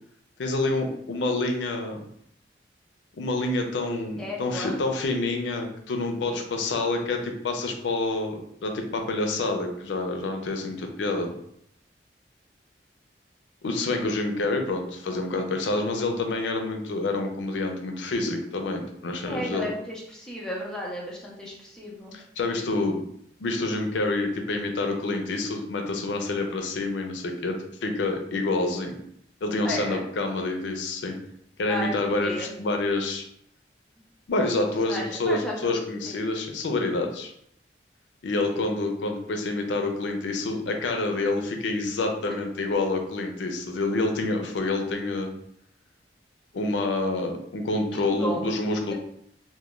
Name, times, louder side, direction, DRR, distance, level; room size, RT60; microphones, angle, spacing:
voice 1, 0.4-2.0 3.2-11.3 13.6-19.7 22.1-23.0 23.4-27.6 27.8-28.9 29.4-31.2 31.6-33.2 34.3-37.3 38.2-45.3 46.5-48.9, left 2 dB, 90° left, 4 dB, 0.4 m, -27 dB
voice 2, 4.2-4.7 6.2-6.4 19.3-22.1 29.6-30.0 31.7-32.5 34.9-35.7 36.0-36.1 38.5-38.6 47.9-48.4, left 1 dB, 5° left, -4 dB, 0.6 m, -34 dB
2.2 x 2.2 x 3.0 m, 0.71 s
head